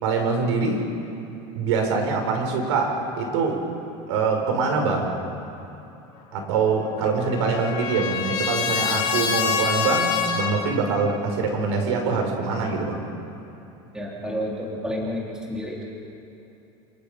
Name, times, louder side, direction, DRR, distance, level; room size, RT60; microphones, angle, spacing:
voice 1, 0.0-0.9 1.5-3.7 4.1-5.2 6.3-13.0, right 4 dB, 85° right, 2 dB, 5.4 m, -24 dB
Trumpet, 6.7-10.6, left 7 dB, 30° left, 2.2 m, -26 dB
voice 2, 13.9-15.2 15.5-15.8, equal, 5° right, -3 dB, 3.0 m, -30 dB
28.0 x 27.5 x 5.2 m, 2.9 s
cardioid pair, 180°, 14 cm